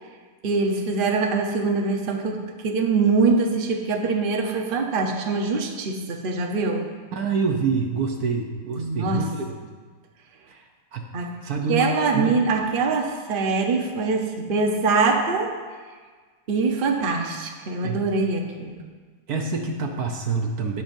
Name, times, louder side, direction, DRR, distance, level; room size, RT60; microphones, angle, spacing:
voice 1, 0.4-6.9 8.8-9.3 11.1-11.4 11.7-15.5 16.5-18.8, right 4 dB, 40° right, 2 dB, 0.9 m, -23 dB
voice 2, 7.1-9.5 10.5-10.6 10.9-11.1 11.4-12.4 17.8-18.1 19.3-20.8, right 4 dB, 65° right, 3 dB, 1.2 m, -26 dB
19.0 x 6.9 x 2.6 m, 1.5 s
omnidirectional pair, 1.9 m